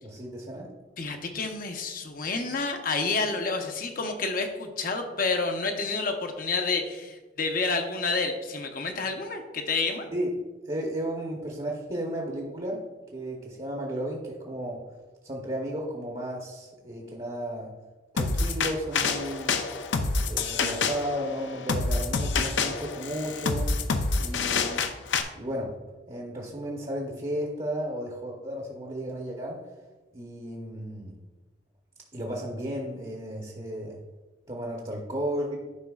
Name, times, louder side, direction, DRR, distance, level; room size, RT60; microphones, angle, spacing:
voice 1, 0.0-0.7 10.1-10.4 10.6-12.8 13.1-14.8 15.2-17.7 18.1-19.7 20.3-23.8 24.2-25.1 25.3-25.8 26.1-29.6 30.1-31.1 32.1-34.0 34.5-35.6, equal, 30° right, -1 dB, 0.8 m, -34 dB
voice 2, 1.0-10.1, left 4 dB, 50° left, 4 dB, 0.8 m, -29 dB
sound 1, 18.2-25.2, left 4 dB, 80° left, 0.5 m, -27 dB
11.5 x 5.3 x 2.4 m, 1.2 s
head